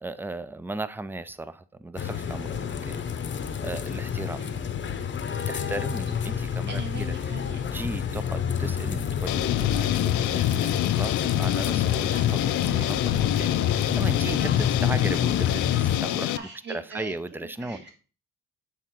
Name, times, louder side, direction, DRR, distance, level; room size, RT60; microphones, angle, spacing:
voice 1, 0.0-3.0 3.6-4.4 5.5-7.1 7.7-13.0 13.2-16.3 16.7-17.8, right 2 dB, 5° right, 0.4 m, -36 dB
sound 1, 2.0-16.0, left 8 dB, 40° left, 0.7 m, -29 dB
voice 2, 6.7-7.6 12.1-12.3 16.3-17.9, right 4 dB, 35° right, 1.9 m, -41 dB
sound 2, 9.3-16.4, left 14 dB, 80° left, 0.5 m, -26 dB
7.7 x 3.6 x 4.3 m
cardioid pair, 90°, 30 cm